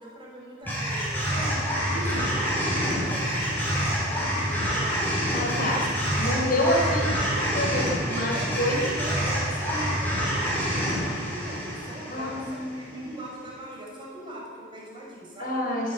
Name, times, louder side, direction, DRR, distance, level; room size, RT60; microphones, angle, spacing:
voice 1, 0.0-1.6 1.9-5.2 5.7-5.9 6.3-7.6 8.0-15.6, right 1 dB, 25° right, -3 dB, 6.2 m, -41 dB
sound 1, 0.6-13.0, equal, 10° left, 7.3 m, -27 dB
voice 2, 1.3-1.6 1.9-2.2 5.3-5.9 6.2-7.1 7.5-8.8 12.1-13.1 15.4-15.9, left 1 dB, 45° left, 0 dB, 4.1 m, -28 dB
29.0 x 11.0 x 8.9 m, 2.2 s
head